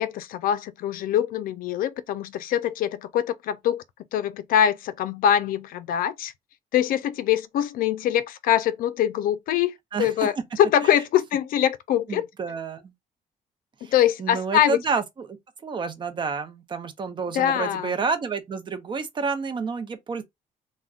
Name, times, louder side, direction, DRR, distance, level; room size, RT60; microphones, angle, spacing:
voice 1, 0.0-3.8 4.1-6.3 6.7-9.7 10.0-12.3 13.8-14.8 17.3-17.9, left 10 dB, 80° left, 0.4 m, -23 dB
voice 2, 9.9-10.4 10.8-11.0 12.1-12.9 13.8-13.9 14.2-15.4 15.6-20.2, right 5 dB, 35° right, 0.5 m, -29 dB
2.4 x 2.1 x 3.5 m
cardioid pair, 130°, 14 cm